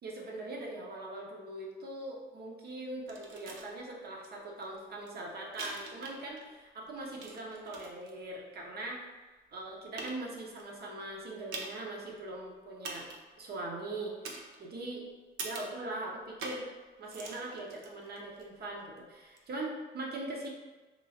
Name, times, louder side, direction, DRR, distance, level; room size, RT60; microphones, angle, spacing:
voice 1, 0.0-9.0 9.5-13.1 13.4-15.1 15.4-16.7 17.0-20.5, right 2 dB, 55° right, -1 dB, 0.8 m, -41 dB
sound 1, 3.1-3.7 4.2-4.3 4.6-6.5 6.8-8.1 8.8-8.9 9.5-9.6 10.0-10.6 11.5-11.9 12.2-12.3 12.8-13.4 14.2-14.9 15.4-15.8 16.4-16.7 17.0-18.4 19.3-19.4, right 3 dB, 85° right, 0.5 m, -44 dB
3.1 x 2.9 x 2.7 m, 1.3 s
cardioid pair, 90°, 20 cm